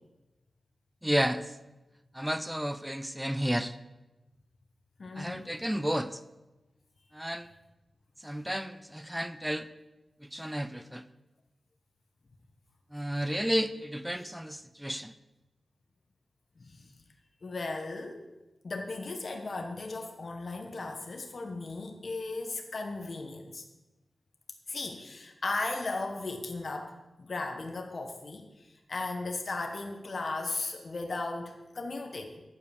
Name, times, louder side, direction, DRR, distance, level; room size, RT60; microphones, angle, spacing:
voice 1, 1.0-1.5 2.1-3.8 5.1-6.2 7.1-7.5 8.2-9.7 10.2-11.0 12.9-15.1, equal, 5° right, 12 dB, 0.6 m, -32 dB
voice 2, 5.0-5.5 16.6-16.8 17.4-18.3 18.6-23.6 24.7-28.5 28.9-32.4, left 3 dB, 60° left, 3 dB, 1.1 m, -36 dB
9.7 x 5.0 x 7.0 m, 1.1 s
cardioid pair, 50°, 0 cm